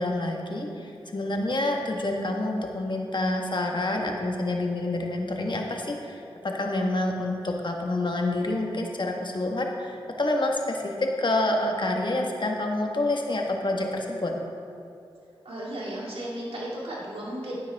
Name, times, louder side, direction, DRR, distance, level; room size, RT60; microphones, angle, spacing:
voice 1, 0.0-14.3, left 2 dB, 55° left, 1 dB, 1.5 m, -28 dB
voice 2, 15.4-17.6, right 1 dB, 85° right, -6 dB, 2.6 m, -34 dB
11.5 x 9.8 x 3.6 m, 2.6 s
cardioid pair, 40°, 10 cm